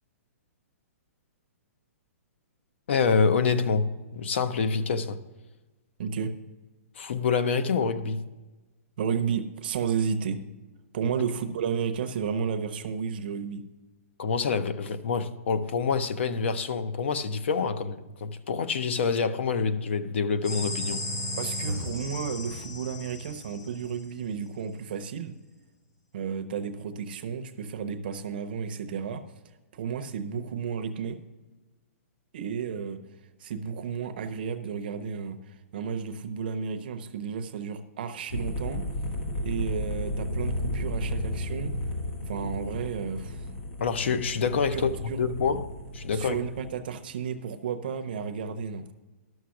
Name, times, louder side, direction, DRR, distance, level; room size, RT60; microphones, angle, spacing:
voice 1, 2.9-5.2 7.0-8.2 14.2-21.0 43.8-46.4, left 5 dB, 50° left, 0.5 m, -27 dB
voice 2, 6.0-6.3 9.0-10.4 10.9-13.6 21.4-25.3 26.1-29.2 29.7-31.2 32.3-33.0 33.4-38.9 39.4-41.7 42.3-43.5 44.7-45.2 46.1-48.9, right 6 dB, 40° right, 0.6 m, -32 dB
sound 1, 20.4-24.1, left 1 dB, 80° left, 3.9 m, -34 dB
sound 2, 38.3-46.8, left 1 dB, 35° left, 1.9 m, -33 dB
12.0 x 6.4 x 5.8 m
hypercardioid pair, 175°, 8 cm